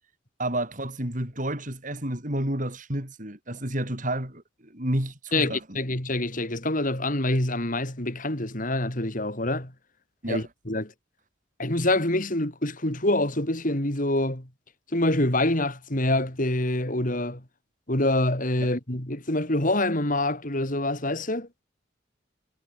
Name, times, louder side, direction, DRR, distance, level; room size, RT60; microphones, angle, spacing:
voice 1, 0.4-5.8 10.2-10.4 18.6-18.7, right 1 dB, 40° right, 5.8 m, -30 dB
voice 2, 5.3-9.7 10.3-10.9 11.6-14.5 14.9-17.4 17.9-21.5, left 1 dB, 45° left, 3.8 m, -26 dB
head